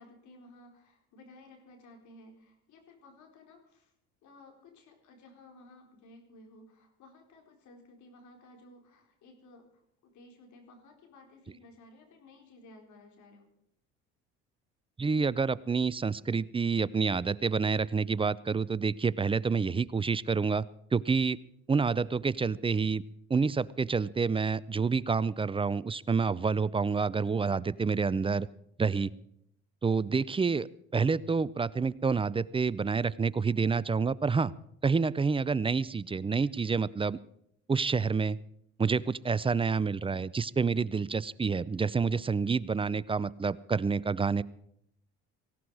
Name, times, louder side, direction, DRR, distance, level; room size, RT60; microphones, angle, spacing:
voice 1, 0.0-3.9 4.2-13.5, left 2 dB, 60° left, 3 dB, 4.4 m, -56 dB
voice 2, 15.0-20.6 20.9-21.4 21.7-23.0 23.3-28.5 28.8-29.1 29.8-34.5 34.8-37.2 37.7-38.4 38.8-44.4, right 5 dB, 15° right, 20 dB, 0.6 m, -28 dB
18.0 x 16.0 x 4.9 m, 0.73 s
hypercardioid pair, 70°, 33 cm